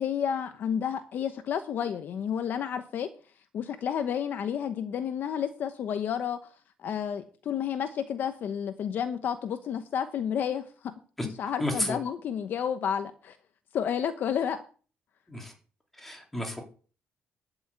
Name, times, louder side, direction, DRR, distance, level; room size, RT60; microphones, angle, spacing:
voice 1, 0.0-3.1 3.5-6.4 6.8-10.9 11.2-13.4 13.7-14.6, left 8 dB, 50° left, 9 dB, 1.0 m, -31 dB
voice 2, 11.6-12.0 15.3-15.5 16.0-16.6, left 1 dB, 5° left, 1 dB, 2.9 m, -31 dB
11.5 x 6.2 x 8.2 m, 0.40 s
cardioid pair, 160°, 4 cm